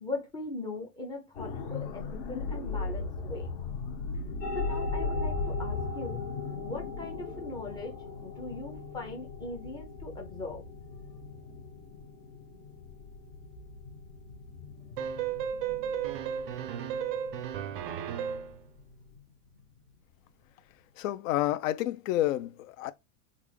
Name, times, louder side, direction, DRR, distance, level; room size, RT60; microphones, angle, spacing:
voice 1, 0.0-3.5 4.5-6.2 6.6-8.0 8.2-10.6, left 2 dB, 10° left, 0.5 m, -40 dB
sound 1, 1.3-19.2 19.6-19.8, left 3 dB, 40° left, 1.1 m, -38 dB
sound 2, 4.4-19.2, left 3 dB, 90° left, 1.3 m, -43 dB
sound 3, 15.0-18.6, right 9 dB, 40° right, 0.4 m, -34 dB
voice 2, 21.0-22.9, left 14 dB, 65° left, 0.6 m, -29 dB
3.3 x 2.5 x 3.3 m
supercardioid pair, 165°, 42 cm